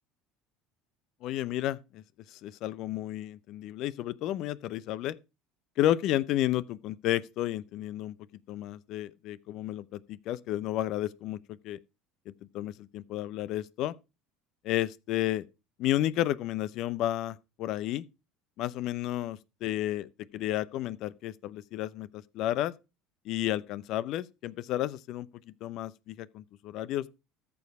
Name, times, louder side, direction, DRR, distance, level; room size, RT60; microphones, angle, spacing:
voice 1, 1.2-2.0 2.3-5.2 5.8-8.2 8.5-11.8 12.3-13.9 14.6-15.4 15.8-18.0 18.6-22.7 23.2-25.3 25.6-27.1, left 13 dB, 60° left, 0.6 m, -32 dB
14.0 x 4.7 x 4.8 m
hypercardioid pair, 70°, 0 cm